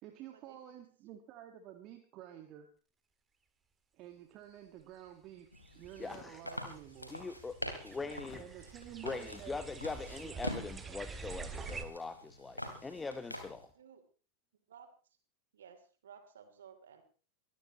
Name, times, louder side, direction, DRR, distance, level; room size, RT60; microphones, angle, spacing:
voice 1, 0.0-2.7 3.9-5.5 5.7-7.2 8.4-9.6 10.2-10.5, right 11 dB, 40° right, 5 dB, 1.8 m, -51 dB
sound 1, 4.8-4.9 5.5-11.8, right 4 dB, 15° right, 2.0 m, -47 dB
sound 2, 5.5-13.7, left 1 dB, 90° left, 2.9 m, -45 dB
sound 3, 6.0-6.4 8.2-8.5, left 14 dB, 45° left, 1.3 m, -53 dB
voice 2, 6.0-6.4 7.1-7.6 7.8-8.4 9.0-13.7, left 4 dB, 10° left, 11 dB, 1.0 m, -42 dB
voice 3, 15.5-17.0, right 7 dB, 65° right, 7 dB, 3.2 m, -56 dB
23.0 x 16.0 x 3.1 m, 0.39 s
figure-of-eight pair, 90°, 0 cm